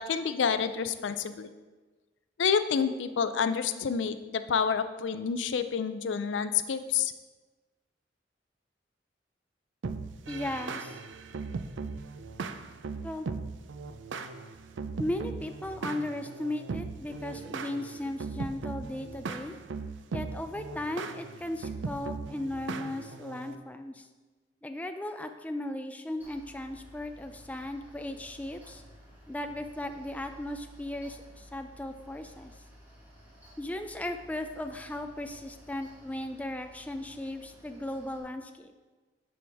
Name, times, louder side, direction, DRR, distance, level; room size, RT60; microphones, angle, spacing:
voice 1, 0.0-1.5 2.4-7.1, left 6 dB, 80° left, 11 dB, 0.4 m, -28 dB
sound 1, 9.8-23.5, right 4 dB, 80° right, 0.4 m, -38 dB
voice 2, 10.3-11.0 13.0-13.3 15.0-19.6 20.1-24.1 24.6-28.8 29.3-32.6 33.6-38.7, left 1 dB, 10° left, 7 dB, 0.3 m, -36 dB
Mechanical fan, 26.2-38.2, equal, 10° right, 1.5 m, -54 dB
9.9 x 4.8 x 3.5 m, 1.3 s
head